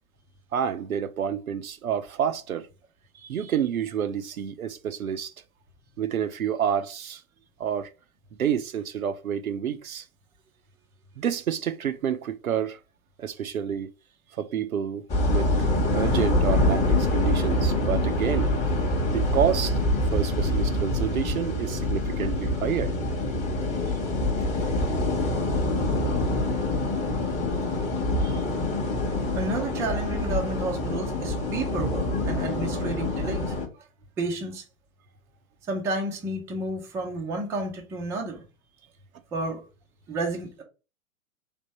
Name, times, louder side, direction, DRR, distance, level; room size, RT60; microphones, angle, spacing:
voice 1, 0.5-2.7 3.2-5.3 6.0-7.2 7.6-7.9 8.4-10.0 11.2-12.8 13.2-13.9 14.4-15.0 15.3-15.5 15.9-19.8 20.1-22.9 28.2-28.4, right 8 dB, 80° right, 0.6 m, -29 dB
sound 1, 15.1-33.7, left 1 dB, 15° left, 0.8 m, -25 dB
voice 2, 29.3-33.6 34.2-34.6 35.7-38.4 39.3-39.6 40.1-40.6, right 2 dB, 5° right, 0.4 m, -31 dB
3.4 x 2.6 x 4.1 m
figure-of-eight pair, 110°, 42 cm